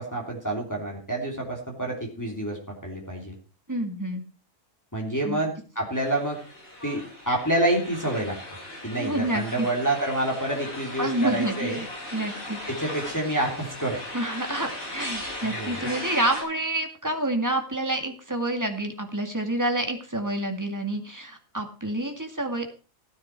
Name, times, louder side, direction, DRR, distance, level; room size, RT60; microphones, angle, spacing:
voice 1, 0.0-3.3 4.9-6.4 6.8-8.4 8.8-11.8 12.7-14.0 15.4-15.8, right 1 dB, 15° left, -1 dB, 3.2 m, -28 dB
voice 2, 3.7-4.2 5.2-5.4 9.0-9.7 11.0-12.6 14.1-22.7, right 1 dB, 15° right, 4 dB, 2.1 m, -28 dB
sound 1, 5.9-16.4, left 1 dB, 80° left, 6.5 m, -38 dB
16.0 x 9.5 x 4.6 m, 0.37 s
omnidirectional pair, 1.4 m